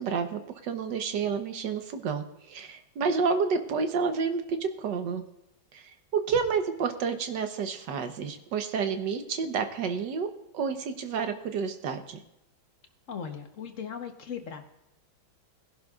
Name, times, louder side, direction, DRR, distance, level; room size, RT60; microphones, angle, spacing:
voice 1, 0.0-5.2 5.7-10.3 10.5-12.2, right 5 dB, 65° right, 7 dB, 1.5 m, -30 dB
voice 2, 13.1-14.6, left 7 dB, 50° left, 6 dB, 1.1 m, -38 dB
20.0 x 11.0 x 2.4 m, 0.90 s
omnidirectional pair, 2.2 m